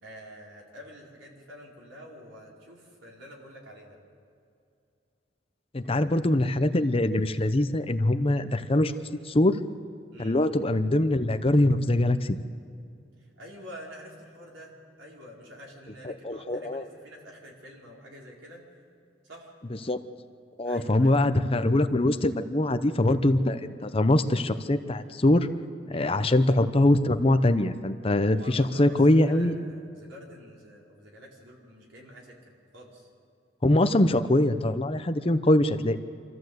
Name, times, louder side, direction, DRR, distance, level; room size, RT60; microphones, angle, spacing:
voice 1, 0.0-4.0 10.1-10.4 13.2-18.6 19.2-19.5 20.6-21.1 25.9-26.2 28.3-33.1, equal, 85° right, -2 dB, 4.6 m, -47 dB
voice 2, 5.7-8.9 9.3-9.6 10.2-12.4 16.0-16.9 19.8-20.0 20.6-25.5 25.9-29.5 33.6-36.0, left 1 dB, 30° left, 10 dB, 0.7 m, -23 dB
26.5 x 14.0 x 7.9 m, 2.4 s
head